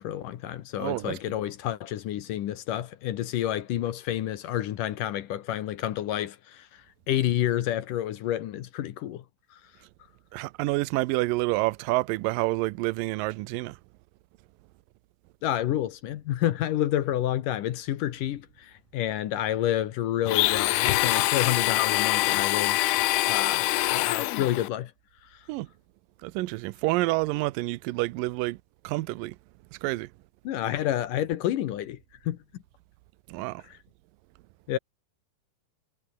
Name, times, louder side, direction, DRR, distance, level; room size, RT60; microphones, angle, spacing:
voice 1, 0.0-6.8 7.1-9.2 15.4-22.9 23.3-24.9 30.5-32.4 34.7-34.8, left 12 dB, 65° left, 2.4 m, -29 dB
voice 2, 0.8-1.4 10.3-13.8 25.5-25.7 26.2-28.6 28.8-29.4 29.7-30.1 33.3-33.6, right 20 dB, 80° right, 2.0 m, -28 dB
Domestic sounds home sounds, 20.3-24.7, left 19 dB, 85° left, 2.6 m, -24 dB
omnidirectional pair, 4.7 m